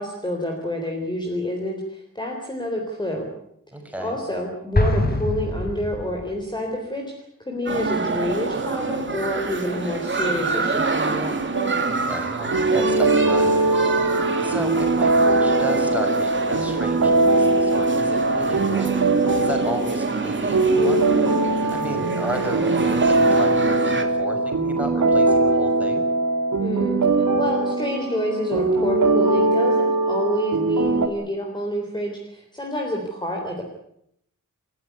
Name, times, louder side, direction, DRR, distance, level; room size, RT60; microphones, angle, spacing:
voice 1, 0.0-3.3 4.0-11.4 26.6-33.6, left 1 dB, 15° left, 1 dB, 3.8 m, -28 dB
voice 2, 3.7-4.2 11.9-13.5 14.4-18.9 19.4-21.0 21.7-26.1, right 1 dB, 5° right, 3 dB, 6.2 m, -33 dB
Explosion, 4.7-6.4, left 1 dB, 30° left, 4.6 m, -23 dB
sound 1, 7.7-24.0, right 4 dB, 35° right, 2.8 m, -27 dB
sound 2, 11.5-31.1, right 2 dB, 65° right, 3.5 m, -21 dB
30.0 x 14.5 x 9.6 m, 0.73 s
wide cardioid pair, 175°, 33 cm